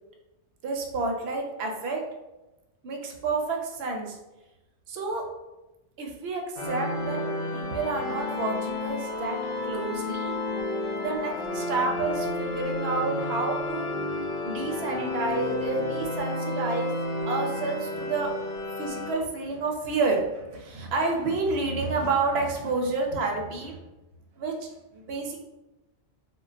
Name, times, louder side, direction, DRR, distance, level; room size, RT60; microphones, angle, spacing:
voice 1, 0.6-2.0 2.8-4.2 4.9-5.3 6.0-7.2 7.5-10.4 11.0-13.9 14.4-16.9 17.3-18.4 18.8-23.8 24.4-24.7 24.9-25.4, right 3 dB, 70° right, 1 dB, 0.8 m, -29 dB
sound 1, 6.6-19.1, left 2 dB, 85° left, 0.9 m, -31 dB
3.3 x 2.2 x 2.4 m, 1.0 s
omnidirectional pair, 1.2 m